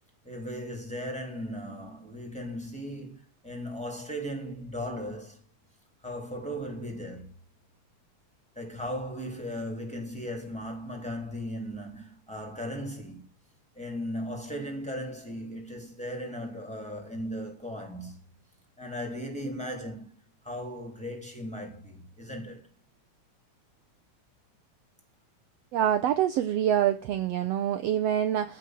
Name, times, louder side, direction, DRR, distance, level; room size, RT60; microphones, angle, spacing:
voice 1, 0.2-5.4 6.0-7.3 8.5-13.3 13.7-18.3 18.8-22.7, equal, ahead, 3.0 m, -37 dB
voice 2, 25.7-28.6, right 10 dB, 75° right, 1.5 m, -26 dB
15.0 x 5.4 x 7.7 m
omnidirectional pair, 3.6 m